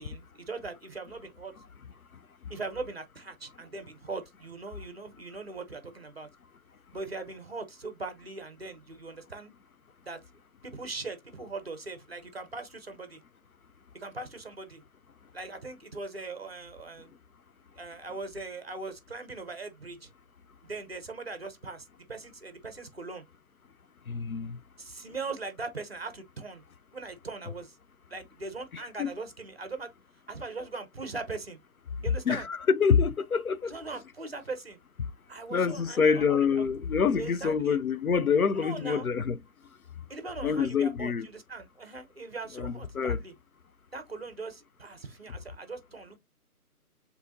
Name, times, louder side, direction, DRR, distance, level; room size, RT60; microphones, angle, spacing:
voice 1, 0.0-1.5 2.5-6.3 6.9-9.5 10.1-10.2 10.6-13.2 13.9-14.8 15.3-17.1 17.8-20.1 20.6-23.2 24.8-26.6 26.9-27.8 28.1-29.9 30.3-31.6 32.0-32.5 33.6-34.8 35.3-36.7 37.2-37.8 38.6-39.1 40.1-43.3 43.9-46.2, right 3 dB, 40° right, 0.8 m, -40 dB
voice 2, 24.1-24.6 28.7-29.1 32.3-33.7 35.5-39.4 40.4-41.3 42.6-43.2, left 6 dB, 65° left, 0.6 m, -26 dB
7.0 x 2.7 x 2.6 m
figure-of-eight pair, 165°, 46 cm